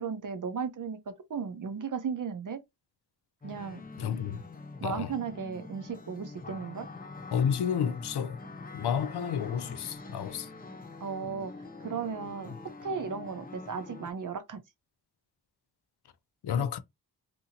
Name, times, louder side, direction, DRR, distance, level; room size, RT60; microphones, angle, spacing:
voice 1, 0.0-2.6 3.4-3.8 4.8-6.9 11.0-12.5 12.8-14.6, right 6 dB, 50° right, 0.6 m, -35 dB
sound 1, 3.4-14.1, left 3 dB, 25° left, 0.5 m, -45 dB
voice 2, 4.0-4.4 4.8-5.1 7.3-8.4 8.7-10.5 16.4-16.8, left 8 dB, 75° left, 0.5 m, -30 dB
2.9 x 2.6 x 2.7 m
wide cardioid pair, 100°, 39 cm